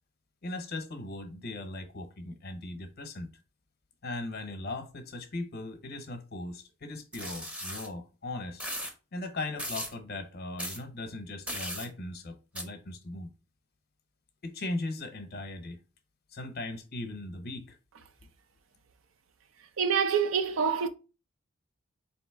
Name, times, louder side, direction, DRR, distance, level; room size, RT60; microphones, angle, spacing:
voice 1, 0.4-3.3 4.0-8.6 9.1-13.3 14.4-15.8 16.3-17.8, left 2 dB, 50° left, 0.7 m, -38 dB
sound 1, 7.1-7.9 8.6-8.9 9.6-9.9 10.6-10.8 11.5-11.9 12.6-12.7, equal, 5° right, 0.6 m, -37 dB
voice 2, 19.8-20.9, right 6 dB, 75° right, 0.5 m, -26 dB
4.0 x 2.9 x 3.4 m
head